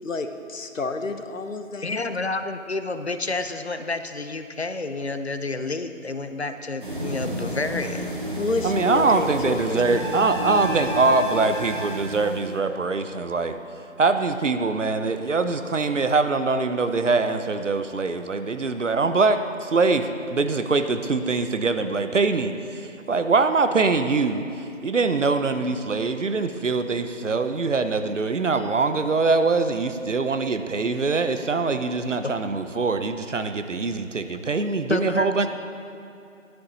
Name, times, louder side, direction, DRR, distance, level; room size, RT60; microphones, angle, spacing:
voice 1, 0.0-2.1 8.4-10.3, left 3 dB, 75° left, 7 dB, 0.9 m, -30 dB
voice 2, 1.8-8.1 32.2-32.3 34.9-35.3, left 3 dB, 55° left, 9 dB, 0.6 m, -29 dB
sound 1, 6.8-12.6, right 1 dB, 40° right, 1.0 m, -31 dB
voice 3, 8.6-13.5 14.0-24.4 24.8-35.5, right 3 dB, 65° right, 9 dB, 0.7 m, -23 dB
10.0 x 10.0 x 4.0 m, 2.7 s
figure-of-eight pair, 175°, 40 cm